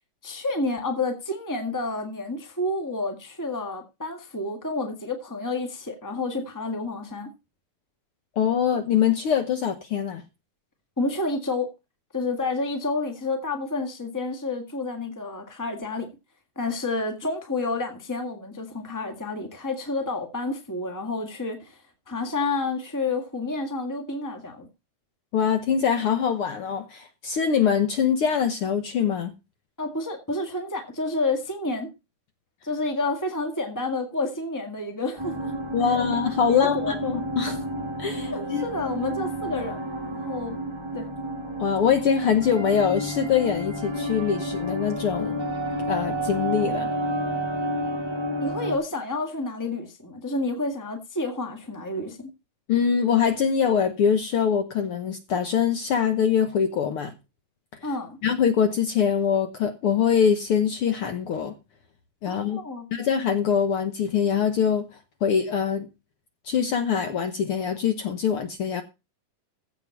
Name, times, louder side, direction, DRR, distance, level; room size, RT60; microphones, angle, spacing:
voice 1, 0.2-7.3 11.0-11.7 12.1-16.1 16.5-24.7 29.8-31.9 32.6-35.5 35.9-36.1 36.5-37.2 38.3-40.6 40.9-41.1 48.4-52.2 57.8-58.2 62.3-62.9, left 2 dB, 15° left, 0.6 m, -29 dB
voice 2, 8.4-10.2 25.3-29.3 35.7-37.6 38.0-38.6 41.6-45.4 45.9-46.9 52.7-57.1 58.2-61.5 62.2-62.6 62.9-64.9 65.2-65.9 66.5-68.8, left 7 dB, 75° left, 1.3 m, -23 dB
sound 1, 35.2-48.8, equal, 15° right, 0.9 m, -30 dB
15.5 x 5.9 x 5.7 m
omnidirectional pair, 3.9 m